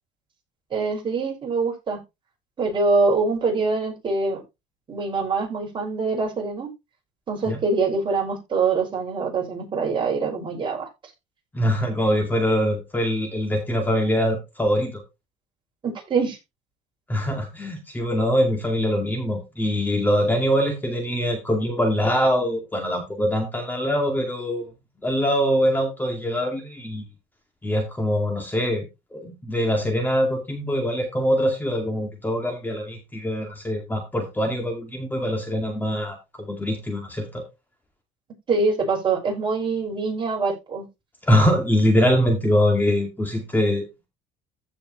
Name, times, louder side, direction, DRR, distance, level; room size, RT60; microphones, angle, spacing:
voice 1, 0.7-2.0 2.6-4.4 4.9-6.7 7.3-10.9 15.8-16.4 38.5-40.9, right 4 dB, 35° right, 5.8 m, -24 dB
voice 2, 11.5-15.0 17.1-24.7 25.0-27.0 27.6-28.9 29.1-37.4 41.2-43.9, equal, 10° left, 2.3 m, -23 dB
15.0 x 5.2 x 3.1 m
cardioid pair, 110°, 15 cm